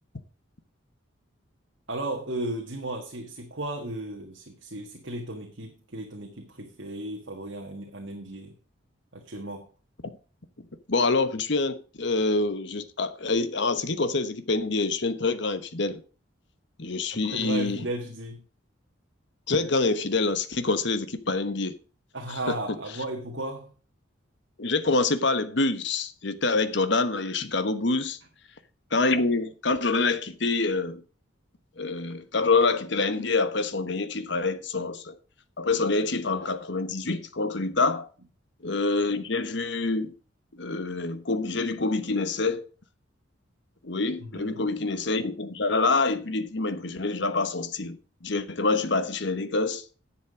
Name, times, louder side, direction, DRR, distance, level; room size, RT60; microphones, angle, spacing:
voice 1, 1.9-8.6 9.1-9.7 17.1-18.4 22.1-23.7 44.2-44.6, right 1 dB, 65° right, 1.6 m, -35 dB
voice 2, 10.9-16.0 16.8-17.8 19.5-21.7 22.3-22.4 24.6-28.2 28.9-31.0 31.8-35.2 35.6-38.1 38.6-40.1 40.5-42.7 43.8-49.8, left 3 dB, 60° left, 1.1 m, -26 dB
10.5 x 7.4 x 4.9 m
head